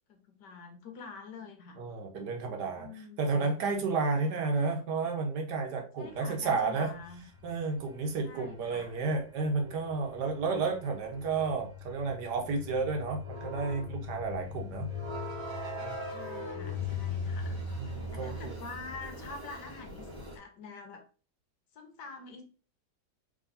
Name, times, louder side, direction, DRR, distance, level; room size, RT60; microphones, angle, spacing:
voice 1, 0.1-1.8 2.8-3.6 4.2-4.6 6.0-7.2 8.2-9.0 16.0-17.6 18.1-20.1 20.3-21.0 21.7-22.4, left 4 dB, 70° left, 5 dB, 1.5 m, -46 dB
voice 2, 1.8-2.9 3.2-6.9 7.4-14.9 15.8-16.0 17.8-18.6, right 4 dB, 65° right, 3 dB, 1.5 m, -32 dB
sound 1, 6.1-20.4, left 3 dB, 15° right, 1.3 m, -40 dB
3.7 x 3.4 x 3.9 m, 0.37 s
omnidirectional pair, 2.0 m